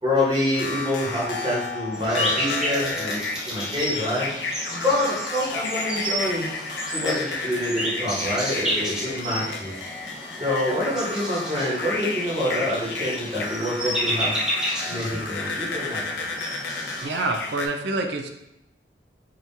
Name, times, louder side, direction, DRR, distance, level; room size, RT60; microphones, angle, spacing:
voice 1, 0.0-4.3 4.7-6.5 6.9-9.7 10.4-14.3 14.8-16.3, left 1 dB, 25° right, -7 dB, 1.2 m, -26 dB
sound 1, 0.5-17.7, left 3 dB, 65° left, 0.4 m, -32 dB
sound 2, 1.9-17.0, equal, 5° right, 0.7 m, -31 dB
voice 2, 17.0-18.3, right 2 dB, 70° right, 5 dB, 0.4 m, -27 dB
3.6 x 2.8 x 2.7 m, 0.85 s
head